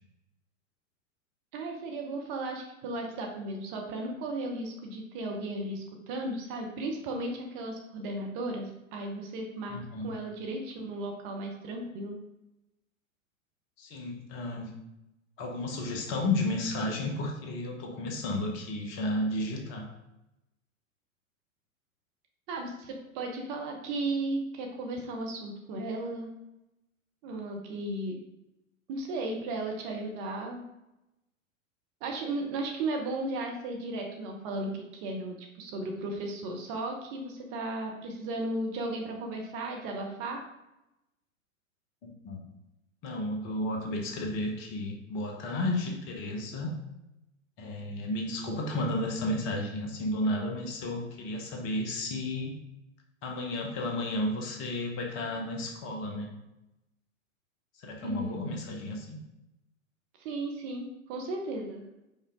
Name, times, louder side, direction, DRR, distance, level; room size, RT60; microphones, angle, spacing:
voice 1, 1.5-9.8 10.0-12.2 22.5-26.3 27.2-28.2 28.9-30.6 32.0-40.4 58.0-58.4 60.2-61.8, right 2 dB, 30° right, 1 dB, 0.8 m, -35 dB
voice 2, 9.7-10.1 13.8-14.7 15.4-19.9 42.0-42.4 43.0-46.7 47.6-52.6 53.2-56.3 57.7-59.2, left 1 dB, 30° left, 2 dB, 1.0 m, -32 dB
5.4 x 4.8 x 3.7 m, 0.90 s
figure-of-eight pair, 105°, 41 cm